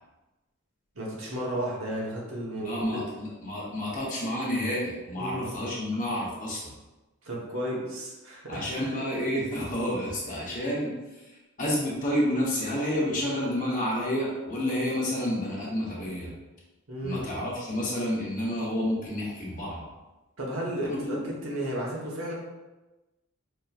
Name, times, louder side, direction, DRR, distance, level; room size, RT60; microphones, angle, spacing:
voice 1, 0.9-3.1 5.2-5.5 7.2-8.9 16.9-17.3 20.4-22.3, right 1 dB, 75° right, -4 dB, 1.1 m, -33 dB
voice 2, 2.6-6.7 8.5-16.3 17.0-19.8 20.9-21.2, equal, 40° left, -5 dB, 0.9 m, -30 dB
5.0 x 2.9 x 2.4 m, 1.1 s
head